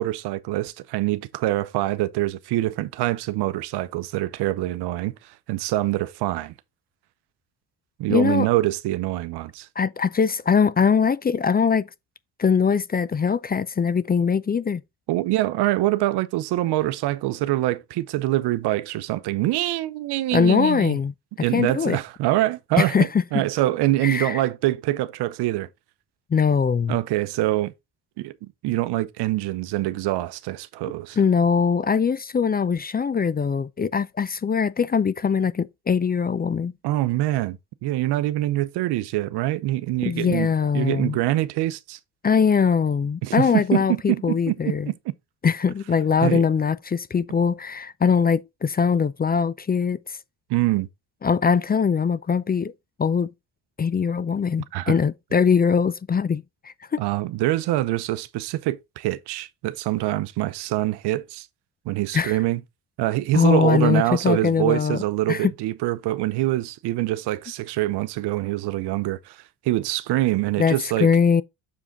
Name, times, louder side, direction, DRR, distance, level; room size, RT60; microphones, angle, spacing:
voice 1, 0.0-6.5 8.0-9.7 15.1-21.0 21.4-25.7 26.9-27.7 28.2-31.2 36.8-40.5 40.7-42.0 43.2-44.9 46.2-46.4 50.5-50.9 54.7-54.9 57.0-61.5 61.9-62.6 63.0-71.1, right 16 dB, 80° right, 0.7 m, -25 dB
voice 2, 8.1-8.5 9.8-11.9 12.4-14.8 20.3-21.1 21.5-22.0 22.8-23.2 24.0-24.4 26.3-27.0 31.2-36.7 40.0-41.2 42.2-44.9 45.4-50.2 51.2-52.7 53.0-53.3 53.8-57.0 62.1-62.4 63.3-65.0 65.3-65.5 70.6-71.4, left 6 dB, 25° left, 0.4 m, -21 dB
7.0 x 4.9 x 3.7 m
supercardioid pair, 60°, 40 cm